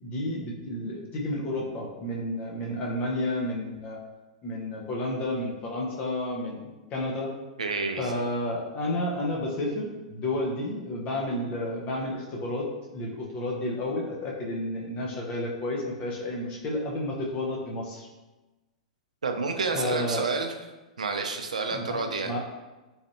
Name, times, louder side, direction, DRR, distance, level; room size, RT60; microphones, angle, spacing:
voice 1, 0.0-4.0 4.4-7.3 8.0-18.1 19.7-20.2 21.7-22.4, left 1 dB, 35° left, -1 dB, 0.7 m, -31 dB
voice 2, 7.6-8.1 19.2-20.5 21.0-22.3, right 4 dB, 85° right, 4 dB, 0.4 m, -29 dB
3.2 x 2.5 x 2.6 m, 1.1 s
hypercardioid pair, 105°, 4 cm